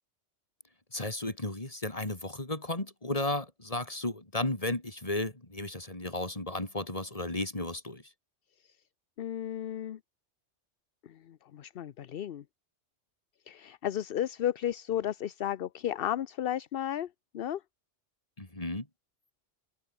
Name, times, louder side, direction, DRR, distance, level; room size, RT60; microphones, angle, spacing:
voice 1, 0.9-8.0 18.4-18.9, left 2 dB, 30° left, 3.4 m, -34 dB
voice 2, 9.2-10.0 11.0-12.4 13.5-17.6, left 11 dB, 60° left, 0.8 m, -34 dB
omnidirectional pair, 1.2 m